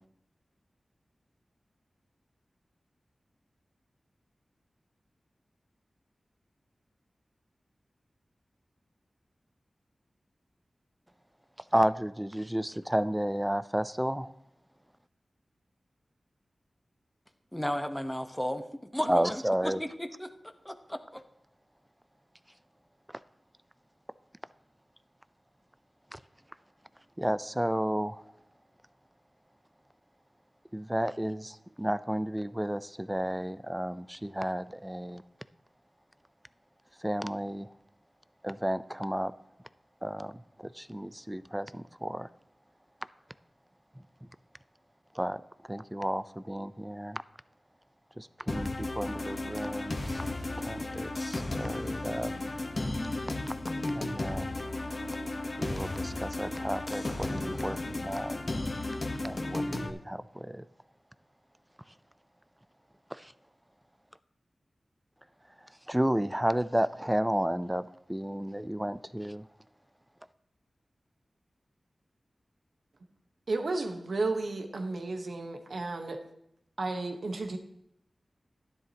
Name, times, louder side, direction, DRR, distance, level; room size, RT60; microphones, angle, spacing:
voice 1, 11.7-14.3 19.1-19.8 26.1-26.2 27.2-28.2 30.7-35.2 37.0-37.7 38.4-39.3 40.0-42.3 45.1-45.4 45.7-47.2 48.2-50.2 50.6-52.3 53.9-54.5 55.6-58.4 59.2-60.7 63.1-63.3 65.9-69.5, equal, 10° right, 0.5 m, -32 dB
voice 2, 17.5-20.3 20.6-21.2, equal, 5° left, 1.0 m, -34 dB
sound 1, 48.5-59.9, left 2 dB, 50° left, 1.1 m, -34 dB
voice 3, 73.5-76.2 76.8-77.6, right 3 dB, 75° right, 1.2 m, -33 dB
12.5 x 11.0 x 2.9 m
cardioid pair, 50°, 0 cm